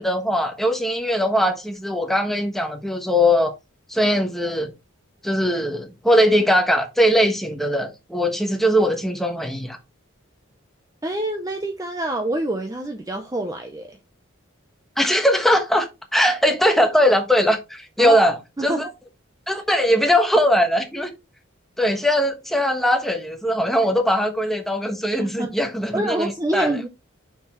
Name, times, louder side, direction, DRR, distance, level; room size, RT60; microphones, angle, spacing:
voice 1, 0.0-3.5 3.9-4.7 5.2-9.8 15.0-15.9 16.1-18.3 18.6-18.9 19.5-21.1 21.8-26.8, equal, ahead, 1.2 m, -20 dB
voice 2, 11.0-14.0 18.0-18.3 18.6-18.9 19.6-19.7 25.2-25.6 25.9-26.9, right 1 dB, 15° right, 0.7 m, -26 dB
6.8 x 5.9 x 3.0 m
head